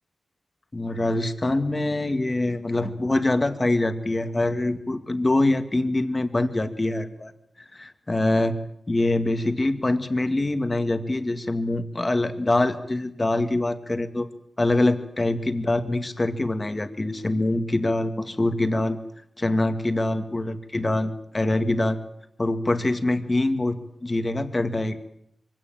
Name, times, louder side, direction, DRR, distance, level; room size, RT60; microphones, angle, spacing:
voice 1, 0.7-7.3 7.6-8.6 8.9-14.3 14.6-19.0 19.4-22.0 22.4-25.0, left 2 dB, 30° left, 9 dB, 2.1 m, -24 dB
24.0 x 17.0 x 9.1 m, 0.75 s
wide cardioid pair, 80°, 0 cm